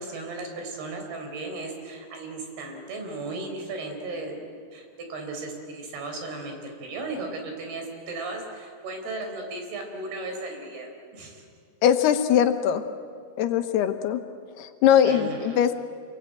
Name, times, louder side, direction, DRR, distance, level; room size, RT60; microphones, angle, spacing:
voice 1, 0.0-11.4 15.0-15.6, right 2 dB, 75° right, 3 dB, 6.1 m, -36 dB
voice 2, 11.8-12.8 13.4-14.2 14.6-15.7, left 9 dB, 80° left, 7 dB, 3.2 m, -21 dB
28.0 x 22.0 x 9.0 m, 2.1 s
omnidirectional pair, 4.6 m